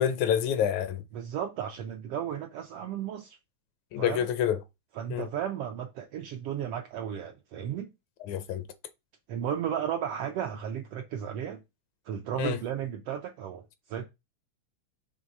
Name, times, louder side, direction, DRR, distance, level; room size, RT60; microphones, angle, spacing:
voice 1, 0.0-1.0 3.9-4.6 5.1-5.3 8.3-8.6 12.4-12.6, left 9 dB, 80° left, 2.1 m, -27 dB
voice 2, 1.1-3.4 4.0-4.3 4.9-7.9 9.3-11.6 12.1-13.6 13.9-14.0, right 9 dB, 80° right, 1.4 m, -34 dB
6.3 x 3.2 x 5.3 m
omnidirectional pair, 3.3 m